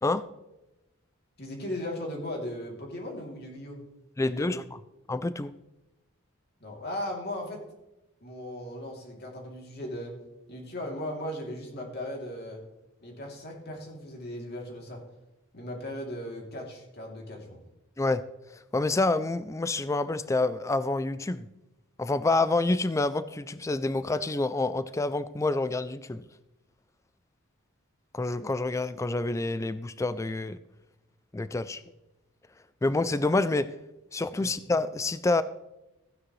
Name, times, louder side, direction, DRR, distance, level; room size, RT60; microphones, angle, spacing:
voice 1, 1.4-3.8 4.2-4.5 6.6-7.6 8.2-10.2 10.5-12.6 13.0-15.0 15.5-17.6 34.4-34.5, left 1 dB, 50° left, 0 dB, 2.9 m, -37 dB
voice 2, 4.2-4.6 5.1-5.5 18.0-18.2 18.7-21.5 22.0-26.2 28.1-30.6 31.3-31.8 32.8-33.7 34.1-35.4, left 2 dB, 15° left, 14 dB, 0.3 m, -27 dB
15.5 x 9.9 x 3.2 m, 0.96 s
head